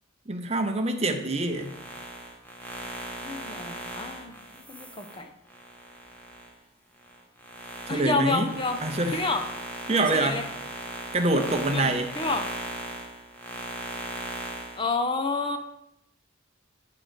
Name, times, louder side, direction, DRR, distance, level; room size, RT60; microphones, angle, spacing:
voice 1, 0.3-1.7 7.9-8.5 8.8-9.2 9.9-10.4 11.1-12.1, right 2 dB, 30° right, 6 dB, 0.8 m, -25 dB
sound 1, 1.4-6.5 7.0-14.8, equal, 10° left, 1.0 m, -38 dB
voice 2, 3.2-4.3 4.7-5.3 7.9-8.8 9.1-9.4 9.9-10.5 11.7-12.4 14.8-15.6, left 3 dB, 25° left, 6 dB, 0.6 m, -29 dB
9.6 x 3.9 x 6.3 m, 0.85 s
head